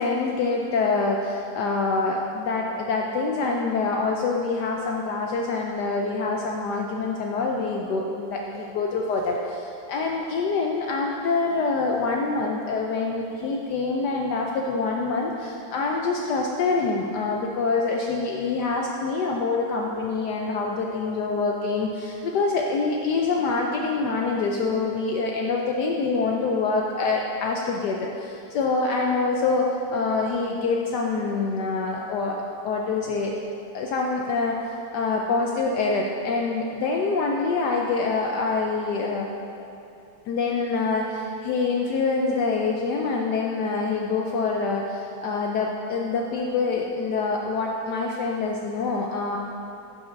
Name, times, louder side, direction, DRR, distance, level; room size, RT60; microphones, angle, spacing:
voice 1, 0.0-32.4 32.6-33.3 33.7-34.6 34.9-39.3 40.3-49.4, left 4 dB, 70° left, 0 dB, 1.1 m, -25 dB
8.0 x 5.5 x 5.7 m, 2.7 s
omnidirectional pair, 2.1 m